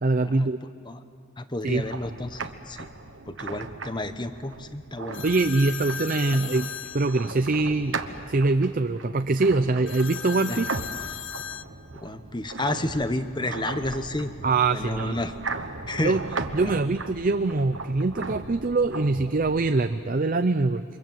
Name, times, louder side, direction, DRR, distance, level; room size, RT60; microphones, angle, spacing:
voice 1, 0.0-0.6 1.6-1.9 5.2-8.0 8.3-10.7 14.4-15.2 16.0-16.2 16.5-20.8, right 3 dB, 40° right, 9 dB, 0.6 m, -23 dB
voice 2, 1.4-2.9 3.3-5.3 10.5-10.6 11.9-14.3 14.7-15.3 15.9-16.1 16.6-16.8, left 1 dB, 20° left, 10 dB, 1.0 m, -31 dB
sound 1, 1.7-20.0, right 3 dB, 65° right, 1.2 m, -38 dB
sound 2, 5.1-7.7 9.9-11.6, left 8 dB, 65° left, 0.8 m, -36 dB
28.5 x 25.5 x 7.7 m, 2.3 s
head